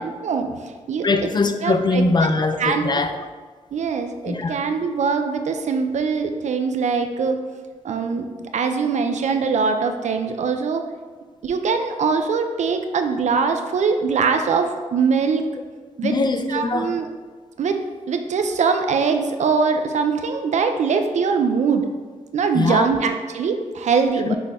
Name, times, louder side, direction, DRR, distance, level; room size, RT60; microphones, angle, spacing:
voice 1, 0.0-1.3 1.6-2.3 2.6-2.8 3.7-7.4 7.8-10.8 11.4-15.5 16.0-16.1 16.5-17.1 17.6-21.9 22.3-24.4, right 5 dB, 65° right, 6 dB, 0.4 m, -22 dB
voice 2, 1.0-3.2 4.3-4.5 16.0-16.9 22.5-22.9 24.3-24.4, left 3 dB, 35° left, 7 dB, 0.4 m, -21 dB
5.9 x 2.1 x 3.5 m, 1.4 s
cardioid pair, 55°, 13 cm